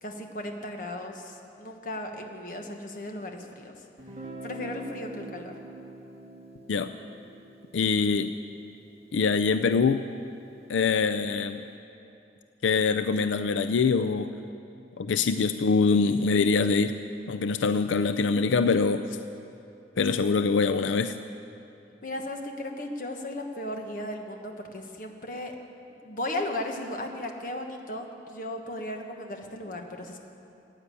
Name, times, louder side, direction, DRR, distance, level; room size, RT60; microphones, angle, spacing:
voice 1, 0.0-3.7 4.4-5.5 22.0-25.6 26.0-30.2, left 1 dB, 45° left, 3 dB, 1.3 m, -36 dB
Guitar, 4.0-9.7, right 1 dB, 35° right, 1.6 m, -45 dB
voice 2, 7.7-8.3 9.1-10.0 10.7-11.6 12.6-14.3 15.0-16.9 17.3-19.2 20.0-21.2, left 4 dB, 90° left, 10 dB, 0.4 m, -24 dB
15.5 x 9.5 x 8.4 m, 2.8 s
head